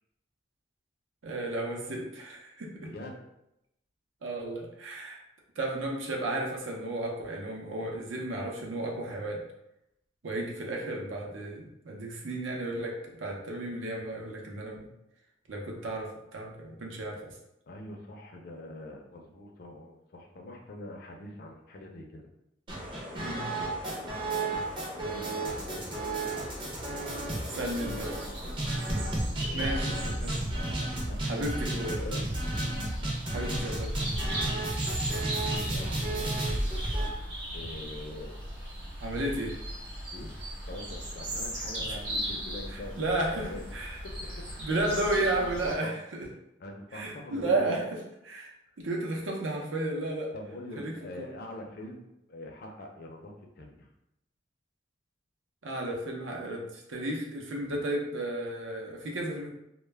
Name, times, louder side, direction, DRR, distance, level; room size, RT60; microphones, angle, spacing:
voice 1, 1.2-2.7 4.2-5.2 5.6-9.4 10.2-14.8 15.5-17.3 23.1-23.6 27.5-28.1 29.5-30.3 31.2-32.0 33.3-34.2 39.0-39.5 42.7-44.0 44.6-46.2 46.9-47.8 48.2-48.5 48.8-50.3 50.8-51.3 55.6-59.5, right 1 dB, 85° right, -1 dB, 0.6 m, -33 dB
voice 2, 2.8-3.2 17.7-22.3 23.3-24.1 25.0-26.8 27.3-28.2 28.7-29.0 29.4-30.1 30.6-32.3 35.1-36.7 37.5-38.3 39.1-39.2 40.1-40.3 40.6-45.9 46.6-47.8 50.3-53.9 57.6-57.8, left 1 dB, 50° left, 1 dB, 0.4 m, -44 dB
sound 1, 22.7-37.1, right 2 dB, 25° right, 0.5 m, -33 dB
sound 2, 27.6-45.7, equal, 60° right, 0.9 m, -38 dB
2.2 x 2.0 x 3.2 m, 0.85 s
head